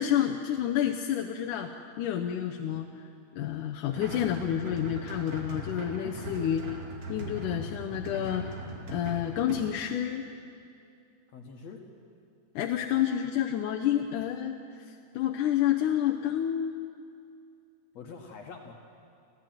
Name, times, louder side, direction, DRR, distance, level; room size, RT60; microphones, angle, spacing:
voice 1, 0.0-1.7 2.0-2.9 3.4-6.8 7.1-8.5 8.9-10.3 12.6-14.6 15.1-16.8, left 10 dB, 85° left, 2 dB, 2.4 m, -29 dB
sound 1, 3.9-9.5, right 1 dB, 50° right, 3.5 m, -40 dB
voice 2, 11.3-11.8 13.0-13.1 17.9-18.7, left 5 dB, 60° left, 2 dB, 2.7 m, -45 dB
26.5 x 16.0 x 9.2 m, 2.4 s
omnidirectional pair, 3.5 m